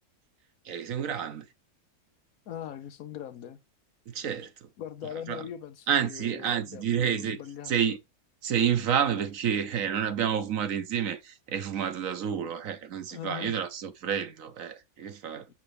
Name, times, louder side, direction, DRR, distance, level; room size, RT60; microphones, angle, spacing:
voice 1, 0.6-1.4 4.1-4.7 5.3-5.4 5.9-7.4 7.7-8.0 8.4-15.5, right 8 dB, 65° right, 1.2 m, -29 dB
voice 2, 2.5-3.6 4.8-7.7 13.1-13.6, left 10 dB, 75° left, 1.1 m, -40 dB
6.7 x 6.0 x 3.3 m
omnidirectional pair, 1.6 m